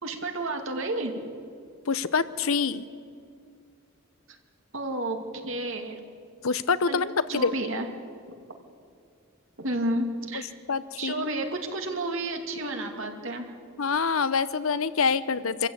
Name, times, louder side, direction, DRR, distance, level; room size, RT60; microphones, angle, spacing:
voice 1, 0.0-1.2 4.3-4.4 4.7-6.0 6.9-7.0 7.3-7.9 9.6-10.5 11.0-13.5, right 1 dB, 65° right, 4 dB, 2.4 m, -31 dB
voice 2, 1.9-2.9 6.4-7.5 10.3-10.4 10.7-11.3 13.8-15.7, left 5 dB, 80° left, 15 dB, 0.8 m, -26 dB
25.5 x 14.5 x 8.7 m, 2.3 s
head